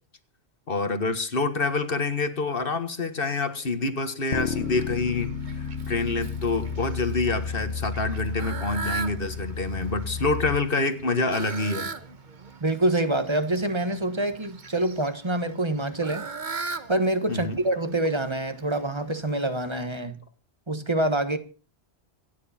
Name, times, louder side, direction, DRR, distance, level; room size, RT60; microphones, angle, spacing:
voice 1, 0.7-5.3 5.9-11.9 17.3-17.6, left 3 dB, 55° left, 1.8 m, -27 dB
sound 1, 4.3-10.6, left 6 dB, 85° left, 1.3 m, -32 dB
Fowl, 4.3-19.7, right 4 dB, 45° right, 1.3 m, -40 dB
voice 2, 12.6-16.2 16.9-20.2 20.7-21.4, right 1 dB, 25° right, 1.3 m, -26 dB
26.0 x 9.8 x 4.3 m
omnidirectional pair, 1.1 m